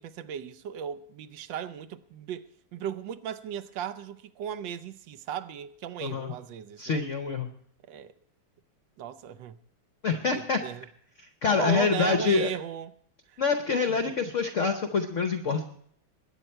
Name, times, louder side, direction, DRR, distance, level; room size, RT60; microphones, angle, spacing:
voice 1, 0.0-7.0 7.9-8.1 9.0-9.6 10.3-10.9 11.4-12.9 13.3-13.4 13.9-14.1, right 9 dB, 70° right, 1.3 m, -36 dB
voice 2, 6.0-6.3 6.8-7.5 10.0-10.6 11.4-12.5 13.4-15.6, left 5 dB, 55° left, 0.8 m, -26 dB
21.5 x 9.2 x 4.4 m
omnidirectional pair, 2.2 m